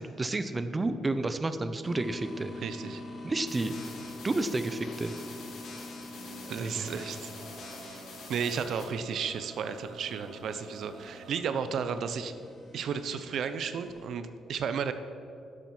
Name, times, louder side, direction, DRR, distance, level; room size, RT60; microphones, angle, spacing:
voice 1, 0.0-2.5 3.2-3.8 4.2-5.1 6.6-6.9, right 2 dB, 25° right, 10 dB, 0.6 m, -31 dB
sound 1, 1.8-14.1, left 1 dB, 30° left, 2.4 m, -46 dB
voice 2, 2.6-3.0 6.5-7.3 7.6-8.0 8.3-12.3 12.7-14.9, right 6 dB, 65° right, 10 dB, 0.6 m, -33 dB
sound 2, 3.5-8.8, left 4 dB, 70° left, 2.2 m, -47 dB
Male singing, 6.1-11.4, right 3 dB, 85° right, 1.3 m, -50 dB
11.0 x 7.4 x 5.9 m, 2.7 s
cardioid pair, 90°, 0 cm